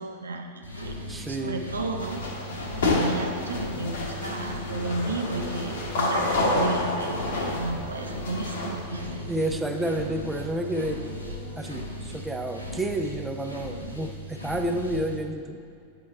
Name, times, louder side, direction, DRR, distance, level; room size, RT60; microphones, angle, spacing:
voice 1, 0.0-1.0 1.3-2.2 2.7-9.3, right 2 dB, 75° right, 4 dB, 0.4 m, -33 dB
sound 1, 0.6-15.2, left 1 dB, 80° left, 0.7 m, -38 dB
voice 2, 1.1-1.7 9.3-11.1 11.6-15.6, right 1 dB, 10° right, 5 dB, 0.4 m, -30 dB
sound 2, 2.0-8.8, left 2 dB, 55° left, 0.9 m, -29 dB
sound 3, 3.0-11.6, left 1 dB, 90° right, 1.2 m, -41 dB
8.4 x 3.1 x 4.5 m, 2.5 s
figure-of-eight pair, 90°, 0 cm